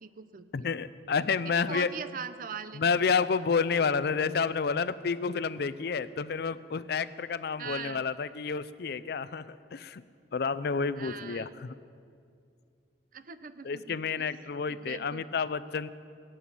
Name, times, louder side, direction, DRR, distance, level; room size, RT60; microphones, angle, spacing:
voice 1, 0.0-0.5 1.5-2.8 7.6-8.0 11.0-11.5 13.1-14.3 14.7-15.2, right 6 dB, 50° right, 12 dB, 0.6 m, -41 dB
voice 2, 0.5-1.9 2.7-10.0 10.3-11.7 13.6-15.9, left 5 dB, 60° left, 15 dB, 0.5 m, -30 dB
16.5 x 7.8 x 8.6 m, 2.3 s
head